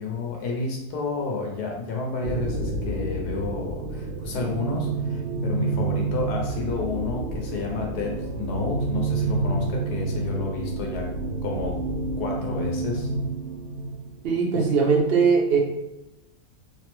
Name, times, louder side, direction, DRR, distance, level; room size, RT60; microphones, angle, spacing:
voice 1, 0.0-11.1 11.4-11.8 12.2-13.1 14.5-14.6, left 3 dB, 75° left, 0 dB, 1.2 m, -30 dB
sound 1, 2.2-14.2, right 3 dB, 90° right, 1.4 m, -29 dB
voice 2, 14.2-15.6, right 5 dB, 65° right, -2 dB, 0.5 m, -20 dB
3.2 x 2.0 x 2.9 m, 0.94 s
omnidirectional pair, 1.7 m